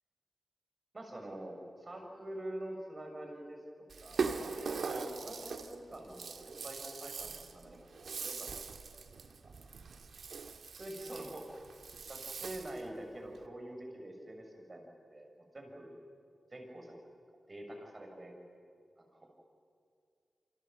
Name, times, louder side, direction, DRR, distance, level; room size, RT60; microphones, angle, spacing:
voice 1, 0.9-3.6 4.0-8.5 8.9-9.1 10.8-11.5 12.1-16.0 16.5-16.9 17.5-18.4 19.0-19.3, right 1 dB, 35° right, 2 dB, 7.1 m, -46 dB
Rattle (instrument), 3.9-12.9, right 5 dB, 75° right, 1.7 m, -41 dB
28.5 x 25.5 x 7.8 m, 2.3 s
cardioid pair, 60°, 0 cm